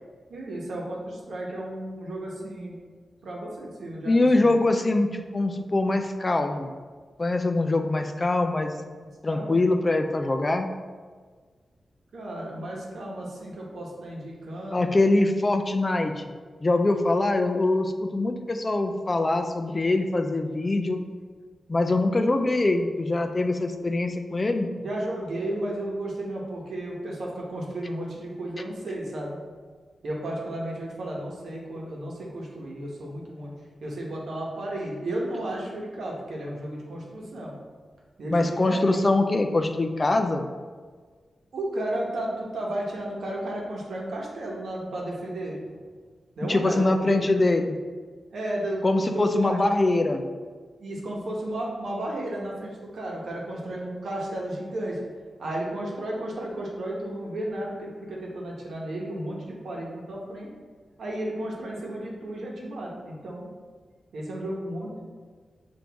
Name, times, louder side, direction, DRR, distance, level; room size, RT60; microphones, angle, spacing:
voice 1, 0.3-2.8 3.2-4.5 9.0-9.6 12.1-14.9 24.8-29.4 30.0-33.5 33.8-37.5 38.2-39.0 41.5-45.6 46.4-47.2 48.3-48.8 49.1-49.6 50.8-55.0 55.4-60.5 61.0-63.4 64.1-65.0, right 1 dB, 85° right, -3 dB, 1.0 m, -33 dB
voice 2, 4.1-6.7 7.2-8.7 9.2-10.7 14.7-16.3 16.6-21.0 21.7-24.7 38.3-40.4 46.4-47.8 48.8-50.2, left 2 dB, 30° left, 6 dB, 0.3 m, -23 dB
6.0 x 2.6 x 3.5 m, 1.5 s
wide cardioid pair, 100°, 0 cm